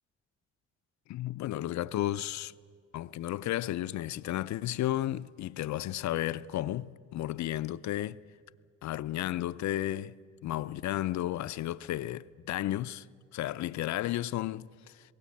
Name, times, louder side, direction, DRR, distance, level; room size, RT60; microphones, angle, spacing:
voice 1, 1.1-2.5 2.9-8.2 8.8-13.1 13.3-14.7, left 14 dB, 65° left, 0.6 m, -33 dB
20.5 x 17.5 x 8.6 m
cardioid pair, 90°, 30 cm